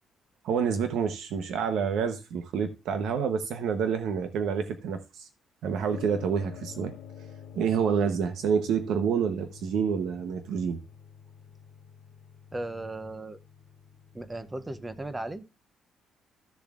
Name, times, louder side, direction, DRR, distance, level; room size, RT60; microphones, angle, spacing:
voice 1, 0.4-5.3 5.6-6.9 7.5-10.8, right 7 dB, 75° right, 0.9 m, -28 dB
sound 1, 5.9-15.0, left 8 dB, 65° left, 0.9 m, -48 dB
voice 2, 12.5-13.4 14.1-15.4, right 2 dB, 10° right, 0.6 m, -36 dB
14.0 x 7.0 x 2.4 m
cardioid pair, 160°, 0 cm